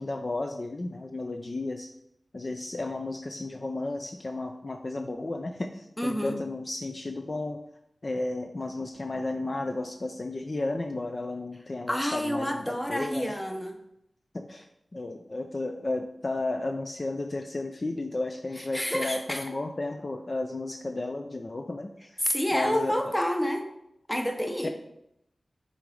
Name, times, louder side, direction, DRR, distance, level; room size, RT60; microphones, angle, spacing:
voice 1, 0.0-1.9 2.3-7.6 8.0-13.4 14.3-22.2 22.5-23.1 24.6-24.7, left 2 dB, 40° left, 5 dB, 0.4 m, -33 dB
voice 2, 6.0-6.4 11.9-13.8 18.7-19.4 22.2-23.7 24.1-24.7, equal, 10° left, 5 dB, 0.7 m, -28 dB
6.9 x 3.9 x 4.9 m, 0.80 s
wide cardioid pair, 100°, 0 cm